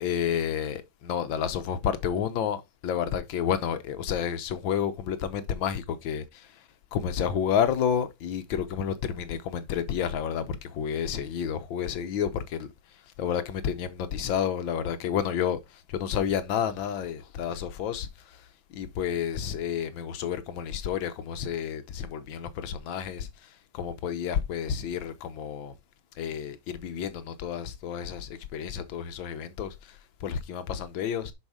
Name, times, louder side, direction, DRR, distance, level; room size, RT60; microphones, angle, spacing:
voice 1, 0.0-6.6 6.9-12.7 13.2-18.4 18.7-25.7 26.2-31.3, left 8 dB, 80° left, 1.5 m, -30 dB
7.1 x 5.6 x 4.8 m
omnidirectional pair, 2.1 m